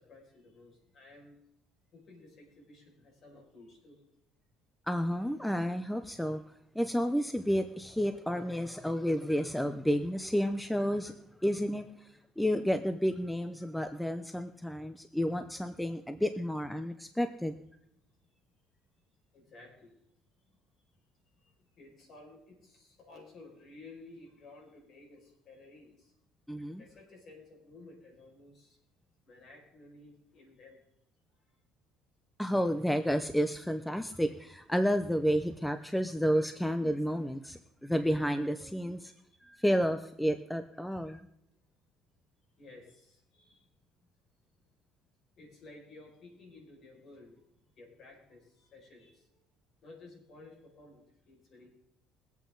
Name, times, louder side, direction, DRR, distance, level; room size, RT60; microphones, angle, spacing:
voice 1, 0.0-1.3 1.9-4.0 19.3-19.9 20.5-20.6 21.3-26.1 26.8-28.8 29.3-30.8 39.0-39.1 40.9-41.0 42.6-43.6 45.4-47.3 47.8-49.3 49.8-51.7, left 2 dB, 50° left, 0 dB, 5.6 m, -54 dB
voice 2, 4.9-6.4 6.7-17.5 26.5-26.8 32.4-39.1 39.4-41.2, equal, 5° left, 9 dB, 0.6 m, -31 dB
22.0 x 8.3 x 3.9 m, 0.76 s
cardioid pair, 115°, 0 cm